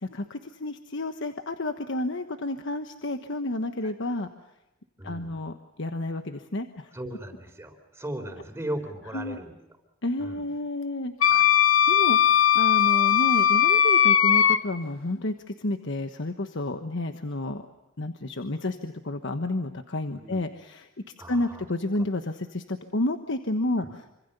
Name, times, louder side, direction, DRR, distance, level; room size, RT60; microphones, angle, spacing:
voice 1, 0.0-4.3 5.0-6.9 9.1-9.4 10.0-11.1 11.9-17.6 18.0-20.9 21.3-23.8, left 1 dB, 65° left, 7 dB, 1.2 m, -30 dB
voice 2, 5.0-5.3 6.9-9.5 10.2-10.4 11.2-11.5 20.1-20.4 21.2-21.7 23.8-23.9, right 1 dB, 15° right, 4 dB, 3.9 m, -37 dB
Wind instrument woodwind instrument, 11.2-14.6, left 9 dB, 85° left, 1.2 m, -19 dB
26.5 x 25.5 x 6.8 m, 0.95 s
head